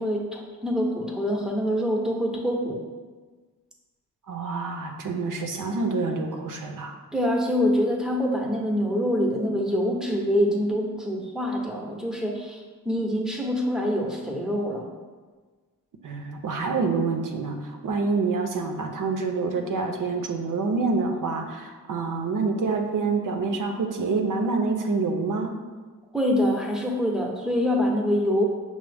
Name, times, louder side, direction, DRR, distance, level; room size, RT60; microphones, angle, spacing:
voice 1, 0.0-2.8 7.1-14.9 26.1-28.4, equal, ahead, -1 dB, 0.7 m, -25 dB
voice 2, 4.3-6.9 16.0-25.6, right 4 dB, 65° right, 3 dB, 0.5 m, -27 dB
6.0 x 2.0 x 3.3 m, 1.4 s
cardioid pair, 75°, 35 cm